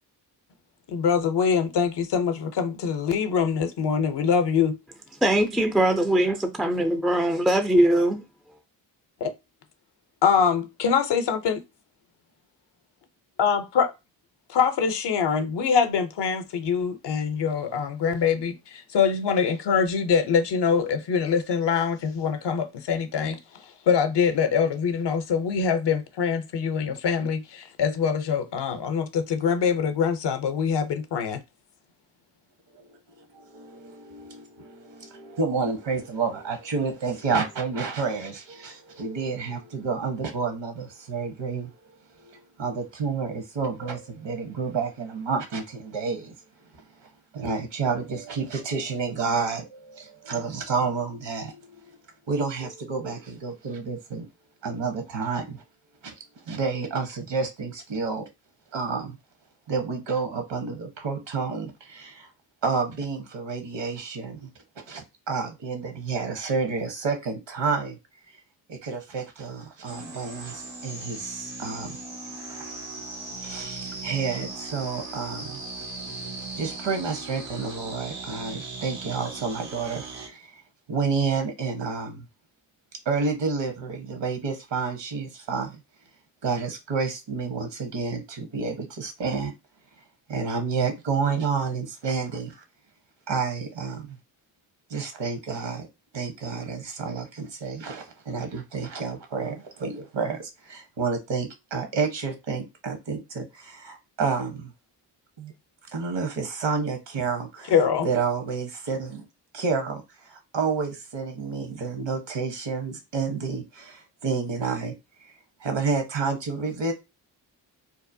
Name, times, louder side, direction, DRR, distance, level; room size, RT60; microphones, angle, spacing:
voice 1, 0.9-4.7 9.2-9.3 10.2-11.6 13.4-13.9 14.5-23.4 23.9-31.4 107.7-108.1, left 6 dB, 55° left, 0.6 m, -24 dB
voice 2, 5.2-8.2, right 1 dB, ahead, 0.3 m, -21 dB
voice 3, 33.2-41.7 42.2-46.3 47.0-52.0 52.3-54.3 54.6-55.6 56.0-56.1 56.5-58.3 58.7-59.2 59.7-62.3 62.6-64.5 64.8-68.0 68.7-72.0 72.5-72.6 73.4-75.6 76.6-80.6 80.9-82.3 83.0-85.8 86.4-89.5 90.3-92.6 93.3-94.2 94.9-95.9 96.1-104.7 105.4-105.5 105.9-107.7 108.0-109.3 109.5-114.9 115.2-115.3 115.6-116.9, right 5 dB, 60° right, 1.0 m, -30 dB
sound 1, 69.9-80.3, right 3 dB, 85° right, 1.1 m, -38 dB
2.8 x 2.1 x 2.6 m
supercardioid pair, 50°, 49 cm